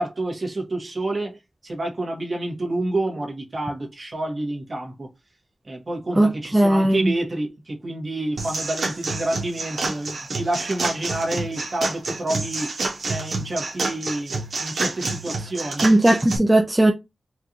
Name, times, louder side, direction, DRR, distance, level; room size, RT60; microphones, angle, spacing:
voice 1, 0.0-1.4 1.6-5.1 5.7-12.7 13.1-15.8, right 1 dB, 45° right, 1.5 m, -28 dB
voice 2, 6.2-7.1 15.8-16.9, right 1 dB, 15° right, 0.6 m, -17 dB
sound 1, 8.4-16.4, right 3 dB, 80° right, 1.2 m, -28 dB
4.6 x 2.5 x 2.9 m
wide cardioid pair, 85°, 0 cm